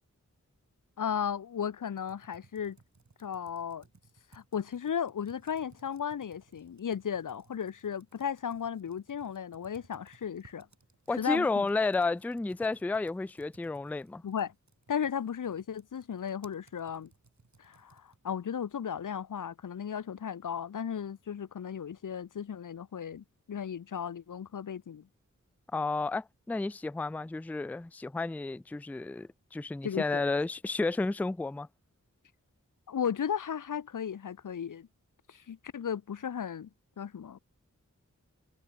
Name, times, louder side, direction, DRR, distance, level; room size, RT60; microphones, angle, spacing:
voice 1, 1.0-2.8 3.2-3.8 4.3-10.7 11.1-11.7 14.2-14.5 14.9-17.1 17.6-25.1 29.8-30.2 32.9-34.9 35.3-36.7 37.0-37.4, left 8 dB, 80° left, 0.7 m, -35 dB
Computer keyboard, 1.9-18.3, right 3 dB, 65° right, 4.9 m, -63 dB
voice 2, 11.1-14.2 25.7-31.7, left 3 dB, 5° left, 0.4 m, -31 dB
wide cardioid pair, 55°, 31 cm